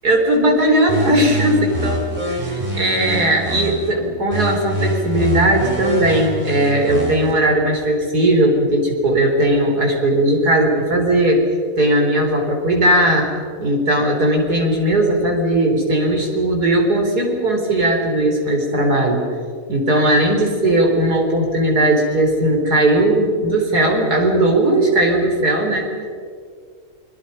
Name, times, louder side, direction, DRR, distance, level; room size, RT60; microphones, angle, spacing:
voice 1, 0.0-11.5 11.8-13.3 13.6-19.2 19.7-26.1, right 1 dB, 90° right, 1 dB, 4.8 m, -17 dB
sound 1, 0.9-3.9 4.3-7.3, equal, 25° right, 4.7 m, -24 dB
30.0 x 23.0 x 5.6 m, 2.1 s
omnidirectional pair, 1.6 m